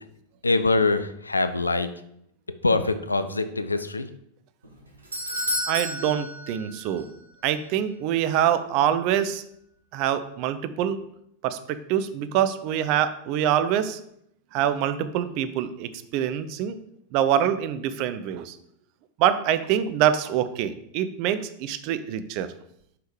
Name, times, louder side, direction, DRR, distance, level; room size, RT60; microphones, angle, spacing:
voice 1, 0.4-1.9 2.6-4.1, left 3 dB, 80° left, 11 dB, 0.5 m, -23 dB
Doorbell, 4.6-7.2 7.4-7.5 8.3-8.4, equal, 75° right, 1.5 m, -31 dB
voice 2, 5.7-7.1 7.4-9.4 9.9-11.0 11.4-14.0 14.5-16.8 17.1-18.6 19.2-22.5, right 10 dB, 45° right, 12 dB, 0.6 m, -25 dB
5.7 x 5.6 x 4.8 m, 0.74 s
figure-of-eight pair, 90°, 0 cm